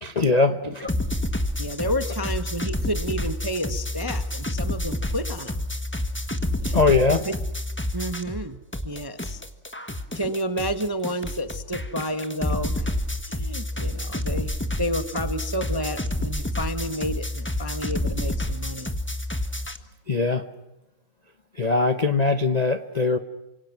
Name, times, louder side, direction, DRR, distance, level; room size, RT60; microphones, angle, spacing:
voice 1, 0.0-0.9 6.7-7.2 20.1-20.4 21.6-23.2, left 3 dB, 45° left, 8 dB, 0.5 m, -21 dB
sound 1, 0.9-8.5 8.7-19.8, left 1 dB, 5° left, 1.0 m, -29 dB
voice 2, 1.6-5.6 6.6-6.8 7.2-7.3 7.9-9.4 10.1-12.9 13.3-18.9, equal, 20° right, 9 dB, 0.6 m, -30 dB
28.5 x 25.5 x 6.0 m, 0.99 s
omnidirectional pair, 2.4 m